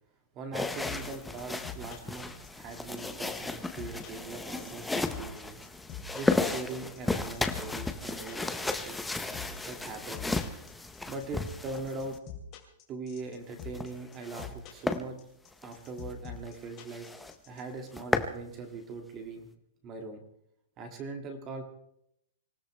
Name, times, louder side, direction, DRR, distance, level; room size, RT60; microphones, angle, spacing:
voice 1, 0.4-5.6 6.1-9.0 9.6-10.3 11.1-12.2 12.9-15.2 15.6-17.1 17.5-19.5 19.8-20.2 20.8-21.6, right 3 dB, 20° right, 5 dB, 2.0 m, -41 dB
sound 1, 0.5-12.2 13.5-14.5 14.8-15.0 15.5-15.7 16.1-16.2 16.5-16.6 16.9-17.3 17.7-18.4, left 2 dB, 5° left, 0.6 m, -34 dB
sound 2, 0.8-17.6, left 12 dB, 20° left, 2.6 m, -44 dB
25.5 x 16.0 x 3.3 m, 0.76 s
hypercardioid pair, 180°, 0 cm